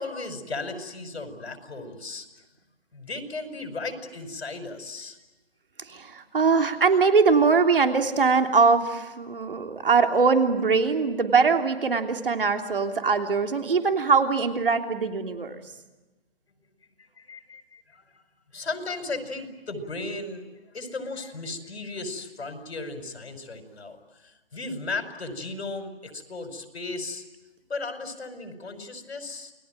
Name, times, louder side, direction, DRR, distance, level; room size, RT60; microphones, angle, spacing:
voice 1, 0.0-2.3 2.9-5.2 17.0-18.2 18.5-20.4 20.7-27.2 27.7-29.5, left 3 dB, 90° left, 8 dB, 5.5 m, -36 dB
voice 2, 5.8-15.6, right 5 dB, 60° right, 6 dB, 3.3 m, -22 dB
29.5 x 20.0 x 9.1 m, 1.1 s
hypercardioid pair, 180°, 31 cm